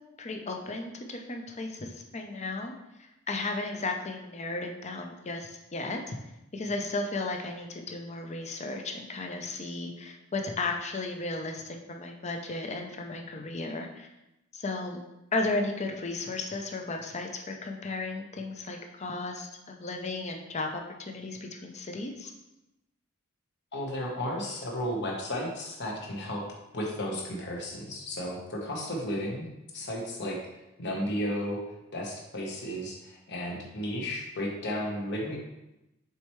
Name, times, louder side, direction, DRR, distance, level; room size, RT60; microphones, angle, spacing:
voice 1, 0.2-2.7 3.0-6.2 6.5-14.1 14.5-15.0 15.3-22.3, left 3 dB, 35° left, 3 dB, 0.6 m, -34 dB
voice 2, 23.7-26.4 26.7-29.5 29.7-30.4 30.8-31.6 31.9-35.4, equal, 55° left, -1 dB, 1.2 m, -33 dB
6.9 x 4.4 x 3.1 m, 0.93 s
head